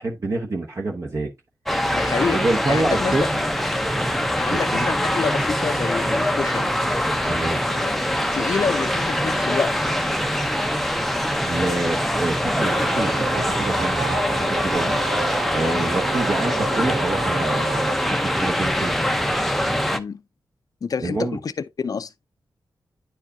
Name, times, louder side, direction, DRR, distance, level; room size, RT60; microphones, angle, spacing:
voice 1, 0.0-1.3 2.3-3.2 4.5-4.9 7.3-7.6 11.4-15.0 15.5-19.2 21.0-21.4, right 2 dB, 40° right, 0.9 m, -27 dB
sound 1, 1.7-20.0, equal, ahead, 0.6 m, -23 dB
voice 2, 1.9-3.2 4.3-6.7 7.8-8.0 8.3-9.7 15.6-15.9 19.9-20.2 20.8-21.5 21.8-22.1, left 5 dB, 55° left, 0.5 m, -28 dB
sound 2, 5.9-19.0, right 1 dB, 20° right, 2.2 m, -42 dB
sound 3, 12.6-18.0, right 6 dB, 70° right, 0.9 m, -31 dB
9.9 x 4.6 x 2.6 m
wide cardioid pair, 130°, 8 cm